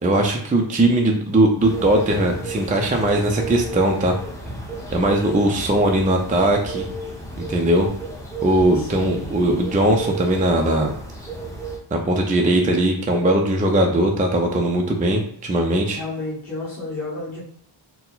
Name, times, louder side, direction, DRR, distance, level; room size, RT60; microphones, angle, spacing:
voice 1, 0.0-4.1 4.9-6.8 7.4-7.9 8.4-10.9 11.9-16.0, right 1 dB, 15° right, 1 dB, 0.4 m, -19 dB
sound 1, 1.6-11.8, right 2 dB, 5° left, 0.8 m, -33 dB
voice 2, 8.8-9.3 15.9-17.4, left 2 dB, 40° left, -13 dB, 1.7 m, -31 dB
4.4 x 2.2 x 3.9 m, 0.65 s
wide cardioid pair, 160°, 50 cm